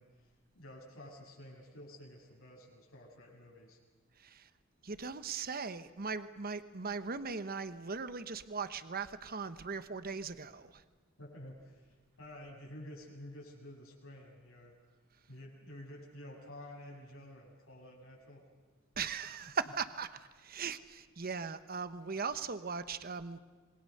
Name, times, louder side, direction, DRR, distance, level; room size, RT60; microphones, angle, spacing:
voice 1, 0.0-3.8 11.2-14.8 15.3-18.5, left 1 dB, 90° left, -3 dB, 7.5 m, -51 dB
voice 2, 4.2-4.5 4.8-10.8 19.0-23.4, right 5 dB, 50° right, 12 dB, 1.1 m, -39 dB
27.0 x 23.0 x 6.7 m, 1.4 s
head